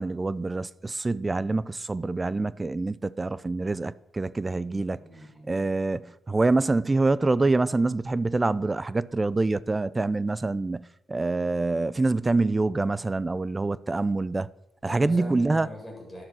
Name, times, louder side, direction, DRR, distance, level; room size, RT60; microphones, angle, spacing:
voice 1, 0.0-5.0 5.5-14.5 14.8-15.7, right 3 dB, 20° right, 0.5 m, -26 dB
voice 2, 5.0-5.5 14.8-16.2, left 1 dB, 5° right, 7.5 m, -41 dB
12.5 x 11.5 x 6.3 m
cardioid pair, 100°, 0 cm